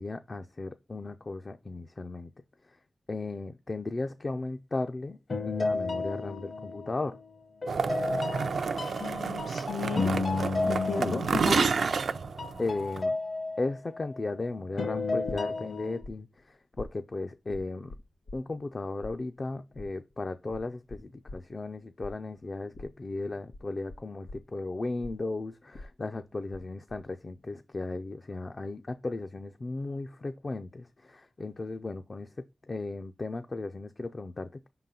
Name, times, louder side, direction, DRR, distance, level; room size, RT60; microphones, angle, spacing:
voice 1, 0.0-2.3 2.7-2.8 3.1-5.2 5.5-7.2 11.0-11.3 12.6-13.2 13.6-17.9 18.3-32.3 32.7-34.7, left 3 dB, 35° left, 0.4 m, -36 dB
sound 1, 5.3-7.2 7.6-12.1 12.4-14.3 14.8-16.0, left 3 dB, 55° left, 0.9 m, -33 dB
sound 2, 7.7-13.0, right 5 dB, 80° right, 0.4 m, -30 dB
voice 2, 9.0-10.1 10.6-11.8, left 5 dB, 85° left, 1.6 m, -34 dB
sound 3, 15.3-16.1 16.4-18.7 19.0-26.6 26.9-27.4, left 2 dB, 70° left, 1.7 m, -45 dB
5.4 x 3.8 x 5.6 m
wide cardioid pair, 135°, 0 cm